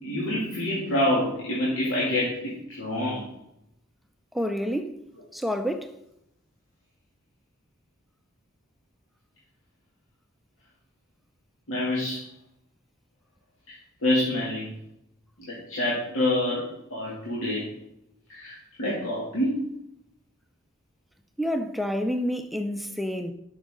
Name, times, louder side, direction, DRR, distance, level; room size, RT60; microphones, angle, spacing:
voice 1, 0.0-3.3 11.7-12.2 13.7-13.8 14.0-14.7 15.4-17.7 18.3-19.6, left 1 dB, 80° left, 2.4 m, -27 dB
voice 2, 4.3-5.0 5.3-5.9 21.4-23.3, equal, ahead, 0.4 m, -28 dB
11.0 x 6.1 x 3.7 m
head